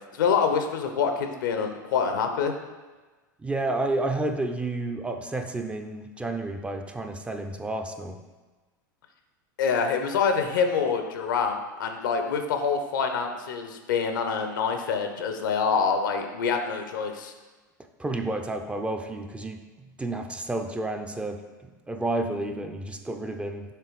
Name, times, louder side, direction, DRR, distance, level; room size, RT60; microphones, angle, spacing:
voice 1, 0.1-2.5 9.6-17.3, left 6 dB, 80° left, 6 dB, 0.8 m, -26 dB
voice 2, 3.4-8.2 18.0-23.7, right 2 dB, 10° right, 5 dB, 0.5 m, -31 dB
6.8 x 3.4 x 4.7 m, 1.3 s
hypercardioid pair, 95°, 10 cm